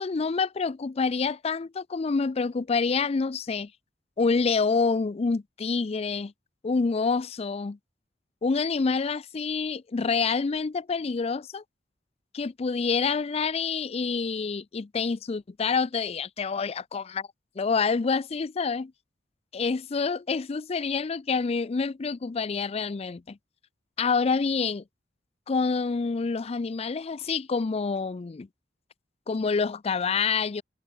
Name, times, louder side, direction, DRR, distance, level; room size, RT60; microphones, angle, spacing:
voice 1, 0.0-3.7 4.2-6.3 6.6-7.8 8.4-11.6 12.3-17.3 17.6-18.9 19.5-23.4 24.0-24.8 25.5-28.5 29.3-30.6, left 4 dB, 35° left, 0.4 m, -27 dB
head